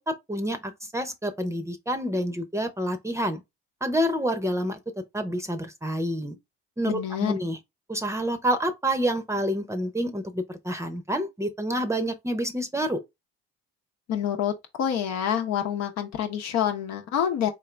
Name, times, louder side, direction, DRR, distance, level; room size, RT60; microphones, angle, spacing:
voice 1, 0.1-3.4 3.8-4.8 5.1-6.4 6.8-7.6 7.9-13.0, equal, 10° right, 0.7 m, -28 dB
voice 2, 6.8-7.3 14.1-17.5, left 9 dB, 60° left, 0.9 m, -27 dB
3.8 x 2.6 x 3.3 m
supercardioid pair, 75°, 30 cm